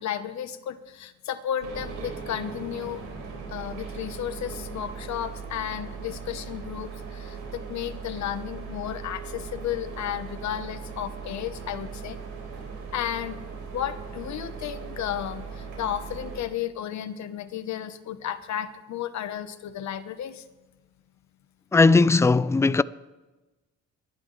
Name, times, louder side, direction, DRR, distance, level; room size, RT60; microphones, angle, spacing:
voice 1, 0.0-3.0 3.5-12.2 12.9-13.4 13.7-20.4, left 10 dB, 65° left, 1.1 m, -33 dB
sound 1, 1.6-16.4, right 5 dB, 85° right, 4.5 m, -39 dB
voice 2, 21.7-22.8, left 3 dB, 10° left, 0.3 m, -18 dB
23.0 x 11.5 x 3.3 m
cardioid pair, 90°, 30 cm